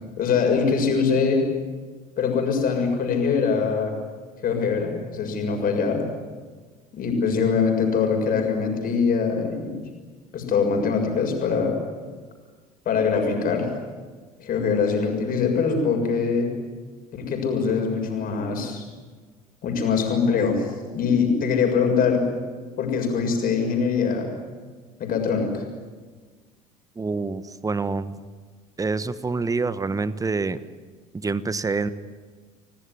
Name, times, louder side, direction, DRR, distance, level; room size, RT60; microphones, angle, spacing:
voice 1, 0.2-1.4 2.2-3.9 4.4-6.0 6.9-9.8 10.3-11.8 12.8-13.7 14.4-16.5 17.1-18.8 19.6-20.7 20.9-22.2 22.8-24.3 25.0-25.6, left 5 dB, 50° left, 3 dB, 6.9 m, -23 dB
voice 2, 27.0-28.2 28.8-30.6 31.1-31.9, right 4 dB, 20° right, 14 dB, 1.3 m, -26 dB
27.5 x 18.0 x 9.8 m, 1.4 s
hypercardioid pair, 65°, 19 cm